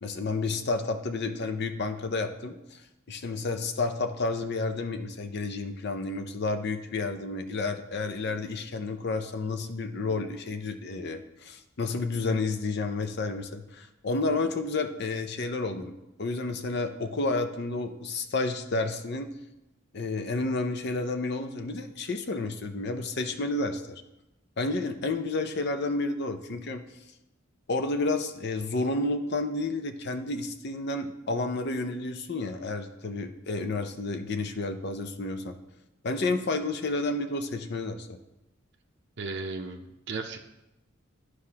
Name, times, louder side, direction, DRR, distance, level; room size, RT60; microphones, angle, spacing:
voice 1, 0.0-2.8 3.1-19.3 19.9-24.0 24.6-26.8 27.7-35.5 36.0-38.1, left 3 dB, 55° left, 7 dB, 0.5 m, -31 dB
voice 2, 39.2-40.4, right 3 dB, 55° right, 2 dB, 0.6 m, -35 dB
11.5 x 4.8 x 2.8 m, 0.94 s
head